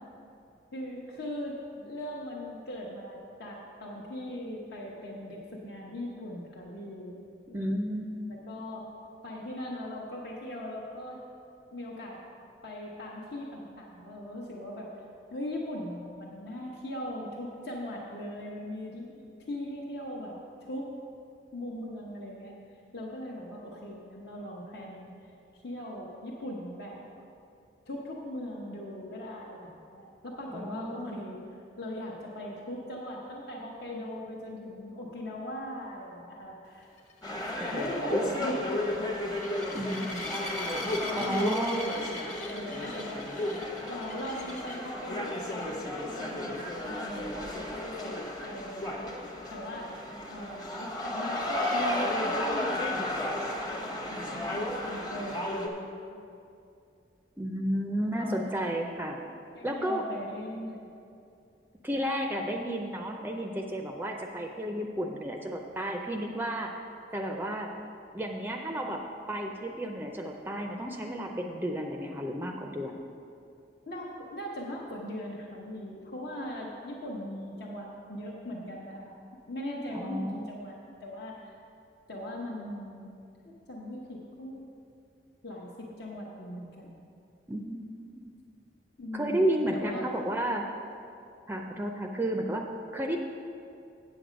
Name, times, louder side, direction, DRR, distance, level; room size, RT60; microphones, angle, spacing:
voice 1, 0.7-7.2 7.5-7.8 8.5-8.8 9.2-11.2 11.7-12.2 12.6-14.9 15.3-20.4 20.7-20.9 21.5-22.5 22.9-25.1 25.6-27.0 27.9-31.4 31.8-36.9 37.6-39.3 40.7-43.2 43.9-49.9 50.3-56.2 58.1-58.4 59.5-60.9 73.9-79.2 79.5-81.5 82.1-83.2 83.4-84.6 85.4-87.0 89.0-90.1, left 1 dB, 60° left, -4 dB, 1.0 m, -39 dB
voice 2, 7.5-8.2 30.5-31.2 37.6-38.4 39.7-40.1 41.1-41.9 57.4-59.2 59.6-60.0 61.8-66.7 67.1-67.7 68.1-69.0 69.3-73.0 79.9-80.4 87.5-88.3 89.1-90.7 91.5-92.7 92.9-93.2, right 1 dB, 10° right, 2 dB, 0.4 m, -32 dB
sound 1, 37.0-44.9 45.5-45.8 46.1-46.2 46.6-46.7 50.2-50.3, left 2 dB, 40° left, 1.3 m, -41 dB
sound 2, 37.2-55.7, left 1 dB, 20° left, 0.9 m, -33 dB
8.3 x 7.7 x 5.1 m, 2.5 s
head